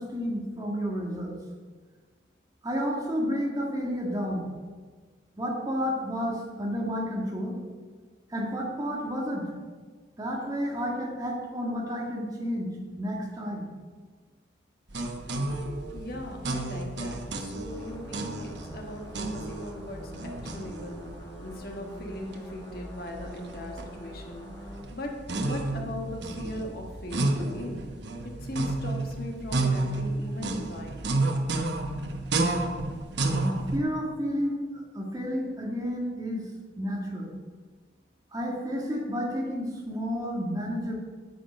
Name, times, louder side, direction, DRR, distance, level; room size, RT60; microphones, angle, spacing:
voice 1, 0.0-1.4 2.6-4.5 5.4-7.6 8.3-9.5 10.2-12.7 13.0-13.7 33.3-36.4 36.8-37.3 38.3-40.9, equal, 20° right, -2 dB, 1.8 m, -31 dB
sound 1, 14.9-33.8, right 2 dB, 65° right, 1.1 m, -31 dB
voice 2, 15.3-25.1 25.4-27.8 28.4-31.2, left 1 dB, 55° left, 1 dB, 1.6 m, -39 dB
sound 2, 17.7-24.8, left 1 dB, 20° left, 1.9 m, -45 dB
9.6 x 9.2 x 5.3 m, 1.5 s
head